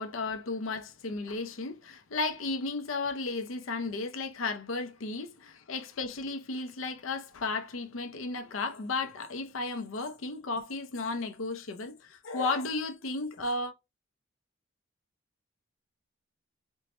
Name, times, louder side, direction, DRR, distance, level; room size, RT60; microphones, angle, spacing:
voice 1, 0.0-13.7, left 3 dB, 85° left, 0.6 m, -34 dB
4.5 x 2.1 x 2.8 m
head